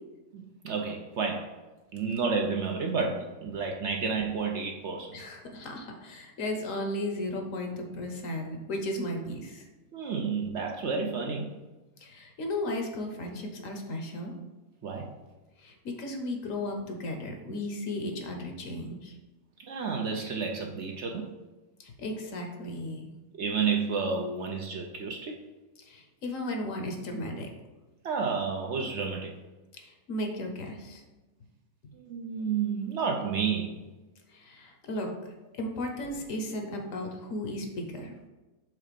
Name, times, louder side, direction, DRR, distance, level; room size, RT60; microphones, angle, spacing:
voice 1, 0.3-1.5 1.9-5.1 9.9-11.5 14.8-15.1 19.6-21.3 23.3-25.4 28.0-29.3 31.9-33.8, right 5 dB, 60° right, 2 dB, 0.8 m, -31 dB
voice 2, 5.1-9.7 12.0-14.3 15.6-19.1 21.8-23.1 25.8-27.5 29.8-31.0 34.3-35.1 35.6-38.1, left 1 dB, 65° left, 3 dB, 1.2 m, -35 dB
4.9 x 3.8 x 5.1 m, 1.1 s
omnidirectional pair, 1.5 m